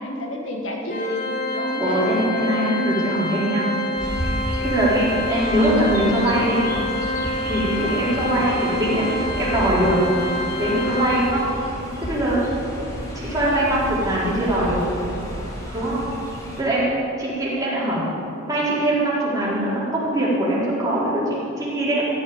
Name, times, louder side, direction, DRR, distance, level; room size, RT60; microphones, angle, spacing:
voice 1, 0.0-2.1 8.2-8.6, left 1 dB, 65° left, 0 dB, 1.8 m, -30 dB
Organ, 0.9-11.6, left 1 dB, 40° left, 1.1 m, -27 dB
voice 2, 1.8-3.6 4.6-6.6 7.5-10.0 10.6-11.5 12.0-12.4 13.1-14.8 15.7-16.0 16.6-16.9 17.2-18.0 18.5-22.2, right 1 dB, 15° right, -9 dB, 4.4 m, -22 dB
Chirp tweet, 4.0-16.6, equal, 15° left, 2.8 m, -32 dB
15.5 x 7.2 x 9.8 m, 2.8 s
head